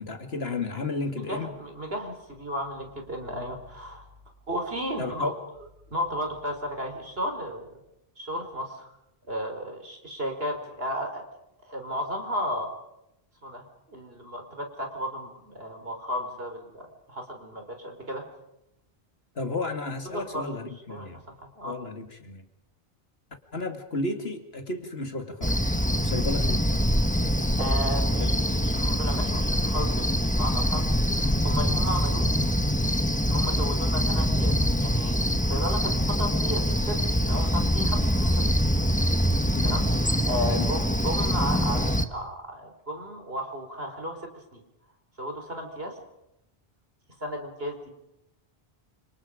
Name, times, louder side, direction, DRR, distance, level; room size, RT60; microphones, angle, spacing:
voice 1, 0.0-1.5 5.0-5.4 19.3-21.2 21.6-22.5 23.5-25.6 26.0-26.6 28.2-28.3 39.5-39.8 40.4-40.7, left 2 dB, 75° left, 6 dB, 2.6 m, -33 dB
voice 2, 1.3-4.0 4.5-5.3 5.9-7.7 8.2-8.9 9.3-11.2 11.7-12.7 13.4-18.2 20.0-20.4 20.9-21.1 21.5-21.7 26.1-26.2 27.6-32.3 33.2-34.5 34.8-38.4 39.6-44.6 45.2-46.0 47.2-47.9, equal, 70° right, 4 dB, 4.8 m, -34 dB
Cricket, 25.4-42.1, equal, 10° left, 1.3 m, -24 dB
29.0 x 27.5 x 5.1 m, 0.85 s
omnidirectional pair, 1.0 m